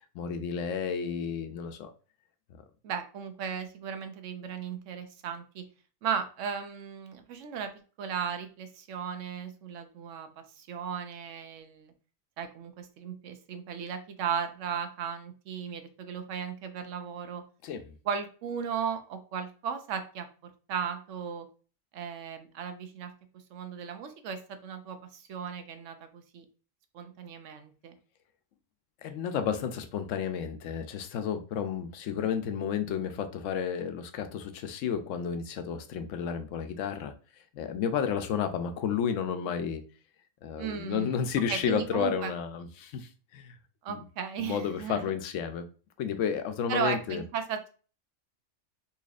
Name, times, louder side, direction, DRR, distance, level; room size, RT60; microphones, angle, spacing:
voice 1, 0.1-1.9 17.6-17.9 29.0-37.1 37.5-39.8 40.4-43.6 43.9-44.0 44.4-45.6 46.0-47.2, left 7 dB, 80° left, 0.9 m, -32 dB
voice 2, 2.8-5.6 6.0-7.7 8.0-11.9 12.4-17.4 18.0-20.3 20.7-21.5 21.9-23.1 23.5-26.4 26.9-28.0 40.6-41.2 41.5-42.3 43.8-45.1 46.7-47.7, right 7 dB, 75° right, 1.0 m, -36 dB
4.1 x 2.8 x 2.4 m
omnidirectional pair, 1.3 m